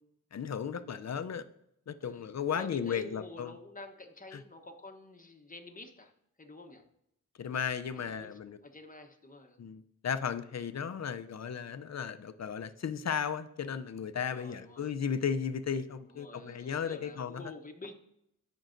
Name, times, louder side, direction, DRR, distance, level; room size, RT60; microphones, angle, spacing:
voice 1, 0.3-1.4 1.9-3.5 4.3-4.4 7.4-8.6 9.6-17.4, left 7 dB, 55° left, 0.5 m, -35 dB
voice 2, 2.0-6.1 6.4-6.8 8.0-9.6 14.2-14.9 16.1-17.9, left 2 dB, 25° left, 1.0 m, -49 dB
13.5 x 5.4 x 2.6 m
cardioid pair, 55°, 33 cm